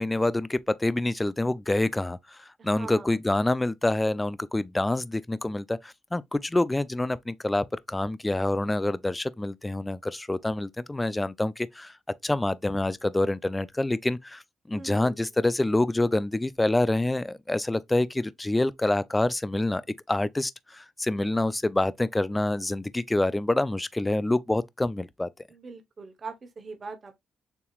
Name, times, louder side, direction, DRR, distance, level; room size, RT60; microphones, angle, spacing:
voice 1, 0.0-2.4 2.6-11.9 12.2-14.4 14.7-19.8 20.1-25.3, left 2 dB, 15° left, 0.4 m, -26 dB
voice 2, 2.6-3.1 14.7-15.2 25.5-27.2, right 4 dB, 40° right, 1.1 m, -41 dB
7.0 x 2.9 x 2.4 m
cardioid pair, 90°, 0 cm